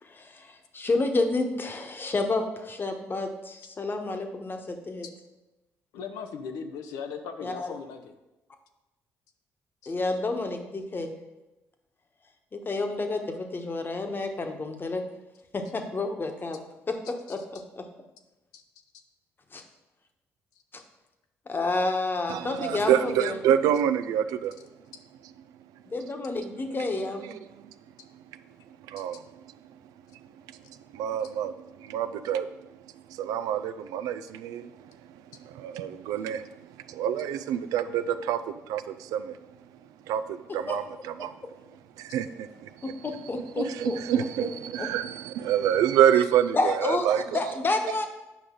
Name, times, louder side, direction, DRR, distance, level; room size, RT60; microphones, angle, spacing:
voice 1, 0.0-5.1 7.4-7.7 9.9-11.1 12.5-15.0 15.5-16.6 16.9-17.4 17.8-17.9 19.5-19.6 21.5-23.4 25.8-27.3 40.7-40.8 42.8-44.2 44.8-44.9 46.5-47.1 47.3-48.1, left 3 dB, 35° left, 1.2 m, -30 dB
voice 2, 5.9-8.1 9.8-9.9 18.5-18.6, left 6 dB, 80° left, 0.7 m, -38 dB
voice 3, 22.3-24.5 26.7-26.8 27.3-27.7 28.9-29.2 30.9-31.5 31.8-32.5 33.1-34.7 35.4-39.4 40.1-41.3 42.0-42.9 43.8-47.4, right 10 dB, 75° right, 0.4 m, -27 dB
8.4 x 5.2 x 3.7 m
hypercardioid pair, 55°, 6 cm